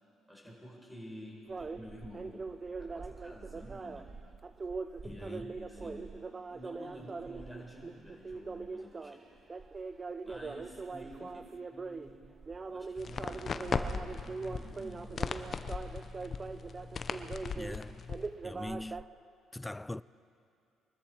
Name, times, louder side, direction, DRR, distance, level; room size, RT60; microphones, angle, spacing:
voice 1, 0.3-2.5 2.8-4.1 5.0-6.2 6.5-9.3 10.2-12.2 12.6-15.2, equal, ahead, 4.5 m, -50 dB
sound 1, 1.5-19.1, right 4 dB, 30° right, 0.6 m, -42 dB
voice 2, 5.0-5.6 17.5-18.0 18.4-19.1 19.5-20.0, left 2 dB, 15° left, 0.3 m, -42 dB
sound 2, 13.0-18.3, left 5 dB, 45° left, 0.7 m, -38 dB
23.5 x 13.0 x 4.5 m
supercardioid pair, 75°, 0 cm